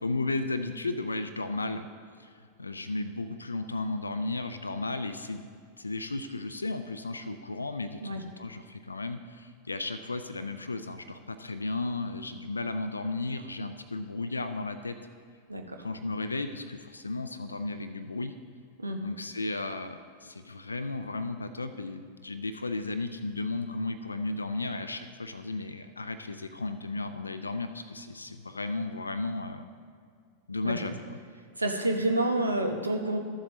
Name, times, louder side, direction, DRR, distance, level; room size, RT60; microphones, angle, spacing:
voice 1, 0.0-1.9 2.2-2.3 2.6-5.5 5.8-15.0 15.8-18.3 19.0-29.7 30.5-31.2, left 2 dB, 80° left, 9 dB, 0.4 m, -34 dB
voice 2, 15.5-15.8 18.8-19.0 30.6-30.8 31.6-33.2, right 1 dB, 85° right, 4 dB, 0.8 m, -28 dB
13.5 x 7.5 x 3.0 m, 2.2 s
figure-of-eight pair, 90°, 0 cm